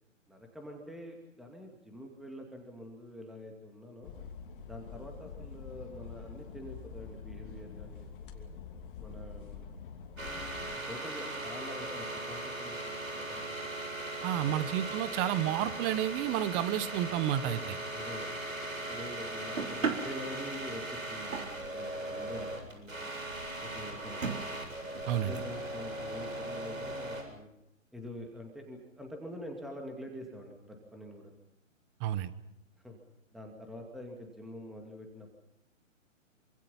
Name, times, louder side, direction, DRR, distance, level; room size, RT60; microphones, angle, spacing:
voice 1, 0.3-4.1 4.7-8.1 8.3-8.5 9.0-9.6 10.9-13.7 14.3-14.6 17.3-18.3 18.9-23.1 23.6-24.4 24.9-27.5 27.9-31.3 32.8-33.0 33.3-35.3, left 1 dB, ahead, 2 dB, 2.4 m, -46 dB
sound 1, 4.0-10.8, left 6 dB, 40° left, 2.8 m, -46 dB
sound 2, 10.2-27.2, right 1 dB, 90° right, 7.8 m, -39 dB
voice 2, 14.2-17.8 25.1-25.3 32.0-32.3, right 12 dB, 20° right, 15 dB, 1.0 m, -31 dB
sound 3, 19.6-21.8 22.4-22.5 22.7-22.8 23.0-23.1 23.7-23.8 24.2-25.6, right 5 dB, 70° right, 3.6 m, -37 dB
26.5 x 25.5 x 5.6 m, 0.84 s
figure-of-eight pair, 135°, 40 cm